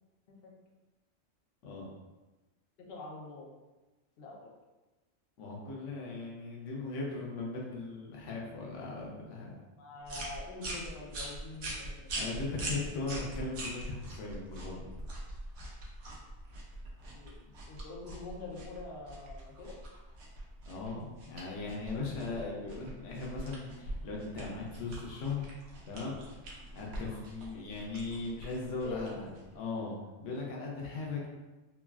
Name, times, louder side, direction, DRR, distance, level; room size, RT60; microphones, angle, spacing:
voice 1, 2.8-3.5 4.2-4.5 5.4-5.5 9.8-12.9 17.1-19.7 28.8-29.2, left 2 dB, 65° left, -2 dB, 0.7 m, -45 dB
voice 2, 5.4-9.6 12.1-14.9 20.7-25.5 25.8-26.2 26.7-29.9 30.2-31.3, left 3 dB, 90° left, -3 dB, 1.0 m, -38 dB
sound 1, 10.0-29.6, right 1 dB, 75° right, 0.9 m, -43 dB
3.2 x 2.2 x 2.3 m, 1.1 s
omnidirectional pair, 1.2 m